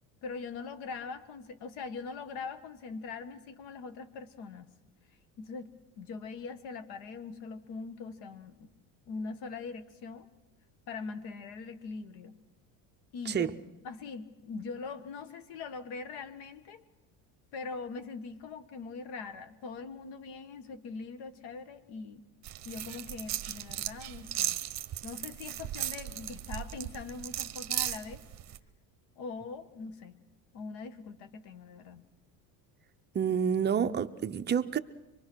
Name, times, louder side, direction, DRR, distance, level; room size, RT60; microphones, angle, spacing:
voice 1, 0.2-4.7 5.4-5.7 6.0-8.7 9.1-10.3 10.9-12.3 13.1-13.5 13.8-16.8 17.5-22.3 22.7-24.6 25.0-28.2 29.2-30.2 30.5-32.1, left 4 dB, 75° left, 1.6 m, -42 dB
sound 1, 22.4-28.6, right 12 dB, 40° right, 1.1 m, -37 dB
voice 2, 33.1-34.8, right 7 dB, 25° right, 0.7 m, -28 dB
25.0 x 22.5 x 6.2 m
cardioid pair, 135°, 40 cm